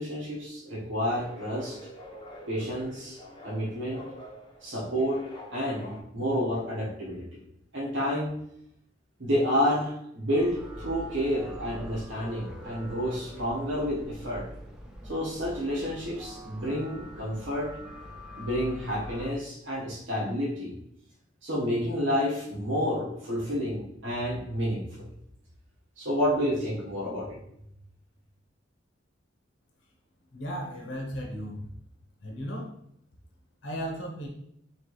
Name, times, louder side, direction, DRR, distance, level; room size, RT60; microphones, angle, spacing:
voice 1, 0.0-1.8 2.5-4.0 4.6-5.2 5.5-7.2 7.7-8.3 9.2-14.4 15.0-17.7 18.3-20.7 21.4-25.1 26.0-27.4, equal, 75° right, -6 dB, 1.2 m, -29 dB
sound 1, 1.0-6.0, equal, 25° left, 0.8 m, -46 dB
sound 2, 10.3-19.3, equal, 5° right, 0.5 m, -44 dB
voice 2, 30.3-31.7 32.2-32.7 33.6-34.3, equal, 70° left, -1 dB, 1.0 m, -35 dB
3.2 x 3.2 x 4.7 m, 0.74 s
head